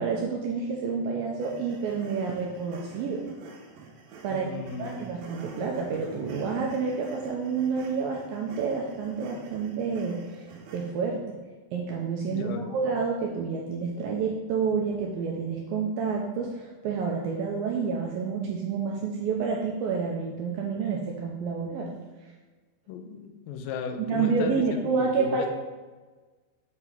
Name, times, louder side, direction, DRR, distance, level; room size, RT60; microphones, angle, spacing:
voice 1, 0.0-3.3 4.2-4.5 4.8-10.5 10.7-11.4 11.7-21.9 24.1-25.5, right 5 dB, 90° right, 0 dB, 2.0 m, -29 dB
sound 1, 1.4-10.9, right 4 dB, 75° right, 2.7 m, -49 dB
voice 2, 4.3-5.0 12.3-12.7 22.9-25.5, left 6 dB, 90° left, 5 dB, 2.0 m, -36 dB
8.0 x 3.9 x 5.8 m, 1.3 s
omnidirectional pair, 4.8 m